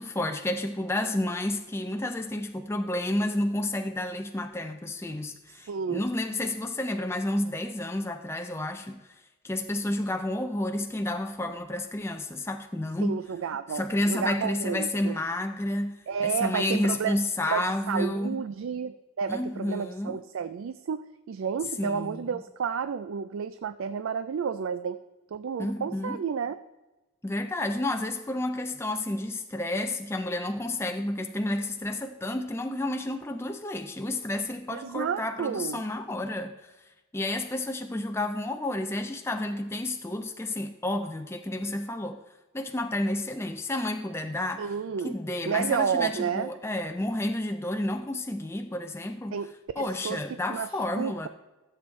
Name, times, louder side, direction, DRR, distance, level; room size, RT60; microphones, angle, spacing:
voice 1, 0.0-9.0 9.4-13.2 13.7-18.4 19.3-20.2 21.8-22.4 25.6-26.2 27.2-36.6 37.1-42.2 42.5-44.7 45.0-49.4 49.8-51.3, left 1 dB, 10° left, 6 dB, 0.4 m, -30 dB
voice 2, 5.7-6.1 13.0-15.2 16.1-17.2 17.5-21.0 21.3-25.0 25.3-26.6 34.7-35.8 44.6-45.2 45.4-46.5 49.3-51.3, right 6 dB, 70° right, 12 dB, 0.4 m, -31 dB
14.5 x 7.7 x 3.1 m, 1.1 s
head